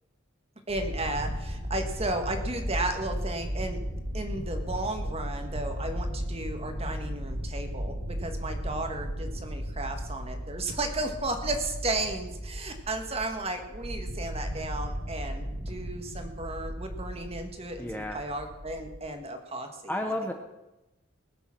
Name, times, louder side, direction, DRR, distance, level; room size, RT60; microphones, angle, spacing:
voice 1, 0.7-3.8 4.1-19.7 20.0-20.1, right 2 dB, 30° right, 6 dB, 1.6 m, -34 dB
sound 1, 0.7-19.1, equal, 80° right, 3.3 m, -35 dB
voice 2, 17.8-18.3 19.9-20.3, left 1 dB, 10° left, 4 dB, 0.9 m, -32 dB
20.5 x 7.0 x 6.1 m, 0.99 s
head